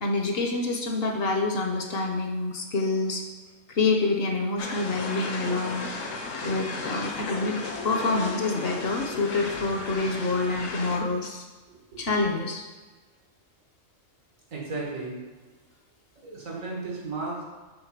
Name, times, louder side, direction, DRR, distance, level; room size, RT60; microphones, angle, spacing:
voice 1, 0.0-3.2 3.7-5.9 6.4-11.4 12.0-12.6, left 3 dB, 55° left, 2 dB, 0.9 m, -27 dB
sound 1, 4.6-11.0, left 3 dB, 75° left, 1.2 m, -35 dB
voice 2, 11.7-12.0 14.5-15.2 16.2-17.4, right 3 dB, 85° right, -3 dB, 2.1 m, -34 dB
5.7 x 3.7 x 5.9 m, 1.3 s
omnidirectional pair, 1.3 m